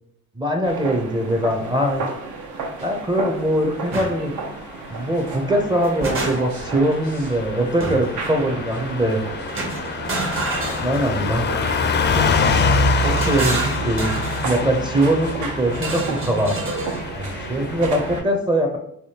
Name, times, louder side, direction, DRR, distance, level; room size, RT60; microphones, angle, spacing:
voice 1, 0.4-2.0 2.8-4.3 4.9-9.2 10.8-11.5 12.1-12.3 13.0-14.2 14.4-16.6 17.2-18.8, right 1 dB, 15° right, 3 dB, 0.5 m, -22 dB
sound 1, 0.6-18.2, right 3 dB, 75° right, 0.7 m, -33 dB
sound 2, 3.9-4.1 5.6-6.7 7.8-8.2 9.5-11.4 12.7-14.5 15.7-17.1, right 2 dB, 45° right, 1.0 m, -28 dB
Car passing by / Truck, 5.2-18.2, left 4 dB, 35° left, 0.4 m, -25 dB
3.4 x 3.3 x 2.8 m, 0.72 s
cardioid pair, 90°, 30 cm